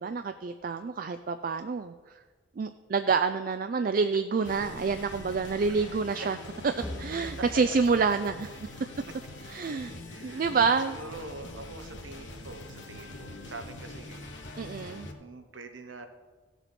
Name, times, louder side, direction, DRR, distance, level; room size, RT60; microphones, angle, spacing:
voice 1, 0.0-1.9 2.6-6.4 6.8-8.5 9.5-9.9 10.2-11.0 14.6-15.1, right 5 dB, 50° right, 10 dB, 0.4 m, -28 dB
sound 1, 4.4-15.1, left 2 dB, 80° left, 1.5 m, -44 dB
voice 2, 5.7-6.3 7.2-7.5 8.1-8.2 9.1-9.2 9.7-14.3 15.2-16.1, right 3 dB, 90° right, 8 dB, 1.0 m, -45 dB
sound 2, 6.8-9.4, left 1 dB, ahead, 0.9 m, -44 dB
15.5 x 7.1 x 4.3 m, 1.4 s
head